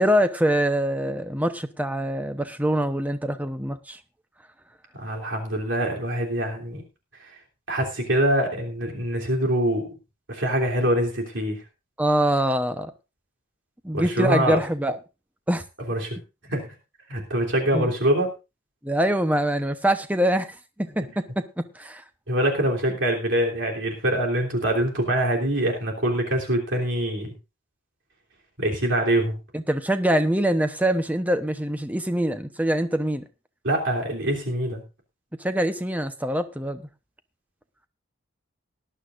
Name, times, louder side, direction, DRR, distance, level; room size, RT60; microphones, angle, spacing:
voice 1, 0.0-4.0 12.0-12.9 13.8-15.0 15.5-15.6 17.7-17.9 18.8-22.0 29.5-33.2 35.4-36.8, right 1 dB, 10° right, 0.9 m, -24 dB
voice 2, 4.9-6.8 7.2-7.4 7.7-9.9 10.3-11.6 13.9-14.6 15.9-16.2 16.4-16.7 17.1-18.3 22.3-27.3 28.6-29.4 33.6-34.8, right 1 dB, 65° right, 3.3 m, -24 dB
18.5 x 11.5 x 2.6 m
head